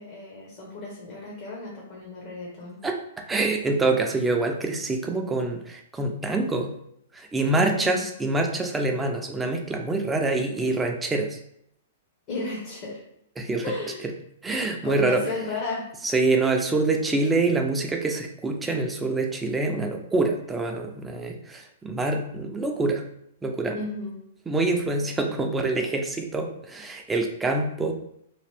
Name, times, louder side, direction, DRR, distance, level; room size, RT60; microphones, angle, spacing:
voice 1, 0.0-2.8 7.5-8.0 12.3-13.0 13.6-14.0 14.8-15.9 23.7-24.2, left 3 dB, 40° left, -4 dB, 0.9 m, -34 dB
voice 2, 3.3-6.7 7.1-11.4 13.4-13.6 14.4-15.2 16.1-23.0 23.4-23.8 24.5-27.9, right 2 dB, 10° right, 3 dB, 0.5 m, -25 dB
2.9 x 2.5 x 3.3 m, 0.73 s
hypercardioid pair, 110°, 0 cm